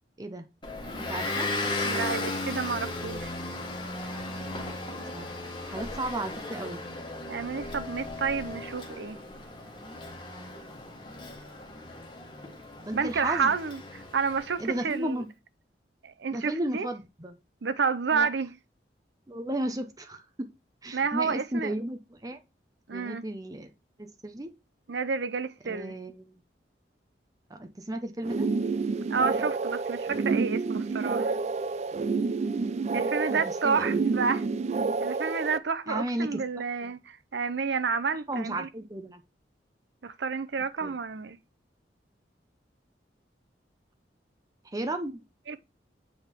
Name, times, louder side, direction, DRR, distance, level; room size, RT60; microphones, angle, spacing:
Motor vehicle (road) / Engine, 0.6-14.8, left 2 dB, 25° left, 1.3 m, -36 dB
voice 1, 1.1-1.5 5.1-5.3 5.6-6.8 12.8-13.5 14.6-15.3 16.3-17.4 18.1-18.3 19.3-20.5 20.8-22.4 22.9-23.7 24.0-24.5 25.6-26.4 27.5-28.5 33.3-34.0 35.9-36.4 36.8-36.9 38.3-39.2 40.8-41.0 44.6-45.2, right 1 dB, 20° right, 0.7 m, -34 dB
voice 2, 1.8-3.3 7.3-9.2 12.9-15.2 16.0-16.9 17.6-18.5 20.9-21.7 22.9-23.2 24.9-25.9 29.1-31.4 32.9-34.4 35.0-38.7 40.0-41.4 45.5-45.6, right 5 dB, 80° right, 0.6 m, -30 dB
sound 1, 28.2-35.6, right 4 dB, 40° right, 0.3 m, -29 dB
7.8 x 3.6 x 4.5 m
head